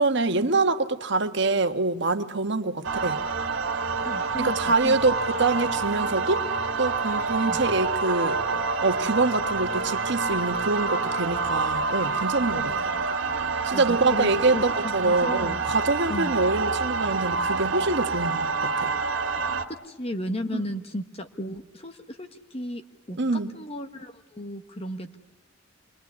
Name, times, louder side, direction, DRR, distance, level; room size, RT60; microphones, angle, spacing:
voice 1, 0.0-3.2 4.4-5.1 5.4-6.5 6.8-8.4 8.8-12.6 13.6-18.9 20.5-20.6 23.2-23.5, right 3 dB, 65° right, 1.4 m, -25 dB
sound 1, 2.8-19.7, right 4 dB, 85° right, 1.9 m, -27 dB
voice 2, 4.0-5.0 7.5-7.6 12.5-13.2 13.7-15.6 16.1-16.4 19.7-22.8 23.1-25.2, left 1 dB, 30° left, 1.4 m, -35 dB
27.5 x 22.5 x 9.8 m
head